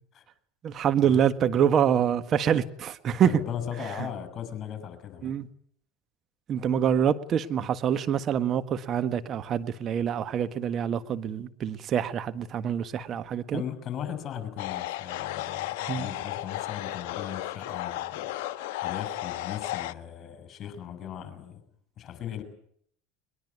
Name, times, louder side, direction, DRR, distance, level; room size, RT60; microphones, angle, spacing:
voice 1, 0.6-3.4 5.2-5.5 6.5-13.6 15.9-16.1, right 8 dB, 40° right, 11 dB, 1.5 m, -26 dB
voice 2, 3.2-5.4 13.5-18.3 18.8-21.6 22.0-22.4, left 9 dB, 40° left, 11 dB, 6.5 m, -38 dB
sound 1, 14.6-19.9, left 15 dB, 65° left, 1.2 m, -34 dB
22.0 x 21.5 x 9.5 m, 0.66 s
hypercardioid pair, 80°, 0 cm